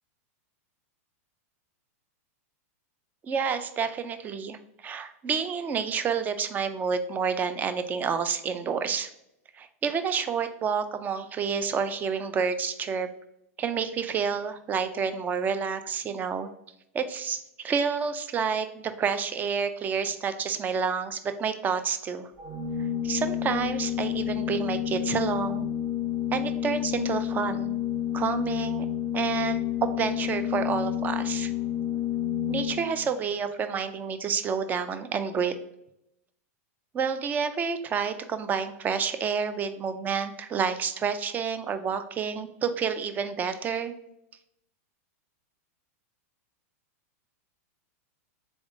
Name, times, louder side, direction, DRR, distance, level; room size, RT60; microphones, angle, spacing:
voice 1, 3.2-9.1 9.6-13.1 13.6-16.5 16.9-22.3 23.0-25.7 26.3-27.8 28.1-28.9 29.1-31.5 32.5-35.6 36.9-43.9, right 6 dB, 20° right, 10 dB, 0.4 m, -29 dB
Organ, 22.4-33.1, left 11 dB, 70° right, 1.6 m, -30 dB
4.0 x 3.5 x 3.6 m, 0.83 s
hypercardioid pair, 130°, 8 cm